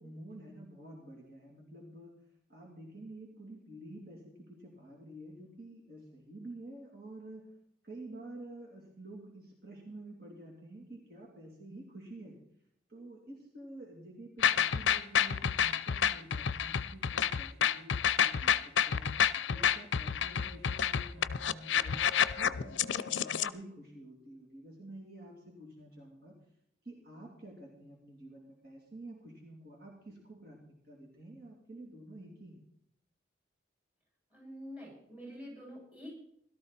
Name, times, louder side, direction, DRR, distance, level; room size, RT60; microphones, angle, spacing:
voice 1, 0.0-2.2 2.5-7.5 7.8-12.4 12.9-19.1 19.5-22.1 22.4-26.3 26.8-32.6, right 1 dB, 50° right, -1 dB, 3.0 m, -49 dB
sound 1, 14.4-23.5, left 8 dB, 70° left, 0.5 m, -29 dB
voice 2, 34.3-36.1, equal, 5° right, -4 dB, 7.5 m, -46 dB
17.0 x 13.0 x 4.2 m, 0.70 s
head